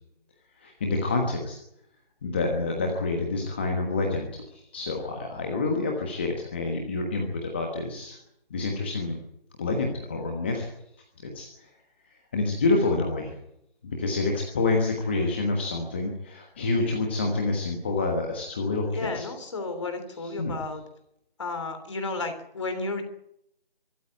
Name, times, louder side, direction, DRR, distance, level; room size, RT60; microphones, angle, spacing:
voice 1, 0.6-1.6 2.2-8.2 8.5-9.2 9.6-10.7 11.2-11.7 12.0-13.3 13.8-19.2 20.4-20.5, left 3 dB, 10° left, 1 dB, 1.3 m, -28 dB
voice 2, 18.9-20.8 21.4-23.0, left 3 dB, 30° left, 7 dB, 3.2 m, -33 dB
24.5 x 13.5 x 10.0 m, 0.79 s
figure-of-eight pair, 165°, 30 cm